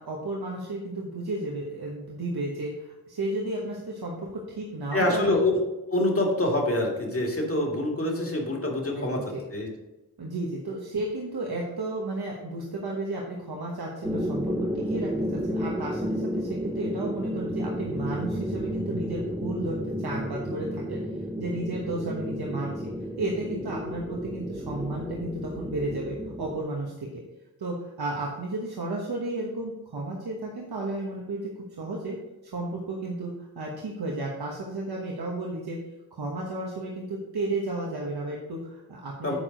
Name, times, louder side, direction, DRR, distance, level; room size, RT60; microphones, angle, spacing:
voice 1, 0.0-5.3 8.9-9.4 10.2-21.0 21.4-22.8 23.2-27.2 27.6-31.5 31.8-32.2 32.5-35.8 36.1-39.3, right 2 dB, 85° right, -2 dB, 1.2 m, -33 dB
voice 2, 4.9-5.6 5.9-9.7 39.2-39.4, left 1 dB, 40° left, 0 dB, 2.1 m, -26 dB
sound 1, 14.0-26.6, equal, 5° right, 0.8 m, -32 dB
8.4 x 4.6 x 5.2 m, 1.0 s
cardioid pair, 45°, 37 cm